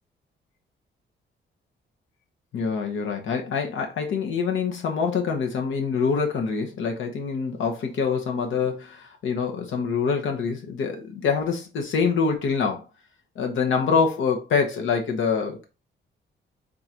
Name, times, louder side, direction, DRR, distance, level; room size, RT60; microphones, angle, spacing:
voice 1, 2.5-12.8 13.4-15.6, left 5 dB, 75° left, 1.0 m, -25 dB
3.9 x 3.7 x 2.9 m
wide cardioid pair, 165°, 20 cm